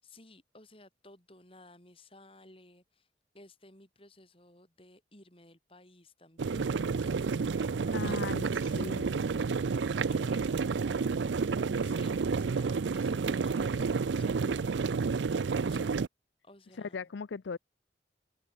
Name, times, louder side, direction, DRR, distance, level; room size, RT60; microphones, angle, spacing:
voice 1, 0.0-3.1 3.3-11.0 11.8-15.1 15.6-16.0 16.4-17.0, left 1 dB, 30° left, 6.8 m, -56 dB
sound 1, 6.4-16.1, right 5 dB, 80° right, 0.5 m, -30 dB
voice 2, 7.9-9.3 16.7-17.6, left 5 dB, 80° left, 0.5 m, -39 dB
head